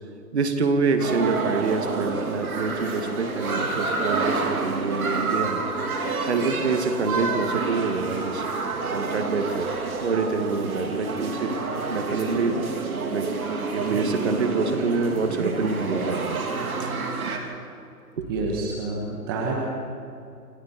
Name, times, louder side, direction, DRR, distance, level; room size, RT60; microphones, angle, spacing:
voice 1, 0.3-5.6 6.3-8.5 8.9-9.7 10.0-11.5 11.9-12.7 13.1-13.3 13.7-16.2 16.8-16.9 18.2-18.3, right 4 dB, 40° right, 6 dB, 2.2 m, -26 dB
sound 1, 1.0-17.4, right 4 dB, 60° right, 3.8 m, -28 dB
voice 2, 18.3-19.7, right 2 dB, 15° right, 0 dB, 1.4 m, -28 dB
28.5 x 26.5 x 4.4 m, 2.5 s
hypercardioid pair, 165°, 48 cm